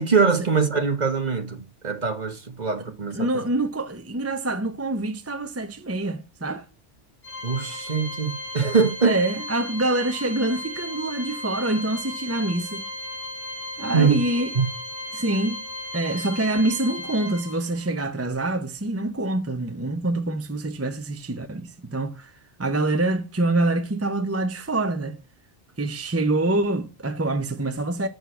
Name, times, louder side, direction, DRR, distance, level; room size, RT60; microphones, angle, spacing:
voice 1, 0.0-3.3 7.4-9.2 13.9-14.2 14.5-14.7, right 5 dB, 40° right, 1.4 m, -23 dB
voice 2, 3.1-6.6 9.0-12.8 13.8-14.5 15.1-15.6 15.9-22.3 22.6-25.2 25.8-28.1, right 2 dB, 15° right, 0.6 m, -25 dB
Organ, 7.2-17.9, left 1 dB, 85° left, 3.9 m, -35 dB
8.0 x 6.3 x 8.2 m
omnidirectional pair, 1.2 m